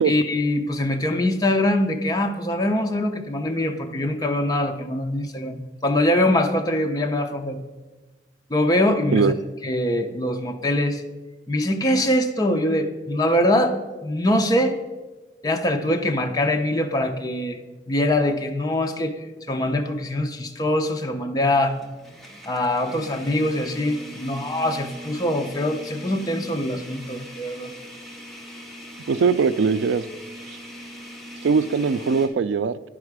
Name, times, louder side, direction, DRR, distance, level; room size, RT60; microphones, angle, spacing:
voice 1, 0.0-7.6 8.5-9.3 9.6-11.0 11.5-14.8 15.4-17.6 17.9-19.2 19.5-21.8 22.5-27.7, left 1 dB, 20° left, 4 dB, 0.5 m, -23 dB
sound 1, 18.7-18.9 19.4-19.5 21.4-32.3, equal, ahead, 1.1 m, -41 dB
voice 2, 29.1-30.0 31.4-32.7, right 5 dB, 80° right, 15 dB, 0.3 m, -20 dB
10.5 x 4.9 x 4.7 m, 1.2 s
head